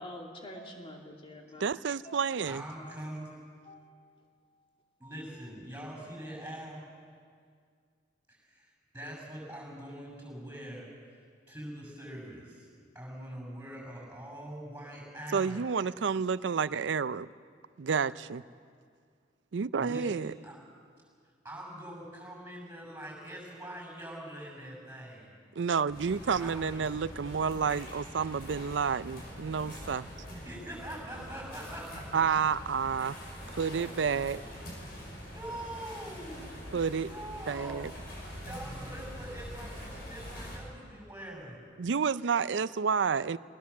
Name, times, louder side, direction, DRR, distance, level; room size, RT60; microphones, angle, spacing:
voice 1, 0.0-1.7 2.0-2.3 2.8-3.0 3.6-4.1 5.2-5.3, left 1 dB, 30° left, 0 dB, 2.6 m, -47 dB
voice 2, 1.6-2.6 15.3-17.3 17.8-18.4 19.5-20.3 25.6-30.1 32.1-33.2 33.5-34.4 36.7-37.1 37.5-37.9 41.8-43.4, right 6 dB, 75° right, 17 dB, 0.5 m, -30 dB
voice 3, 2.5-3.3 5.0-6.8 8.3-10.9 11.5-12.7 12.9-15.6 19.8-20.1 20.4-20.6 21.4-25.3 26.3-26.9 30.4-32.2 34.6-35.0 35.3-36.5 37.0-37.9 38.3-41.6, right 1 dB, 10° right, -2 dB, 7.4 m, -43 dB
sound 1, 25.9-40.6, equal, 55° left, 6.6 m, -44 dB
20.0 x 19.0 x 7.3 m, 2.1 s
head